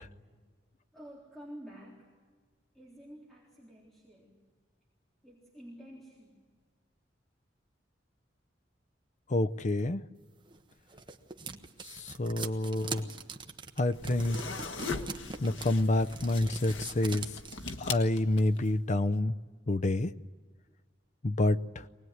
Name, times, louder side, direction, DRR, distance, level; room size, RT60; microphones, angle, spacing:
voice 1, 0.9-2.1 2.7-4.4 5.2-6.5, equal, ahead, 3.7 m, -50 dB
voice 2, 9.3-10.0 11.8-13.1 13.8-14.4 15.4-17.3 17.8-19.3 19.7-20.1 21.2-21.8, left 2 dB, 40° left, 0.6 m, -28 dB
sound 1, 10.5-17.8, right 4 dB, 25° right, 1.2 m, -42 dB
sound 2, 13.9-18.7, left 4 dB, 85° left, 1.6 m, -40 dB
24.0 x 19.5 x 9.5 m
head